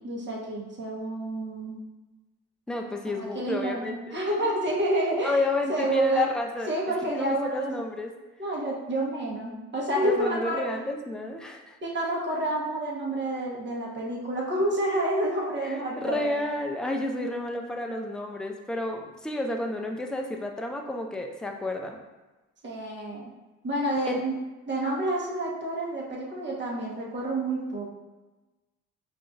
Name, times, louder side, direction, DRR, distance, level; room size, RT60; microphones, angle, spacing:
voice 1, 0.0-1.8 3.1-5.4 5.7-6.3 6.7-7.7 8.4-10.6 11.8-16.3 22.6-23.2 23.6-24.3 24.7-27.9, right 1 dB, 35° right, -3 dB, 1.1 m, -29 dB
voice 2, 2.7-4.0 5.2-6.7 7.0-8.1 10.0-11.8 15.6-22.0 24.0-24.2, left 2 dB, 5° left, 2 dB, 0.3 m, -31 dB
4.7 x 2.6 x 2.4 m, 1.1 s
cardioid pair, 90°, 30 cm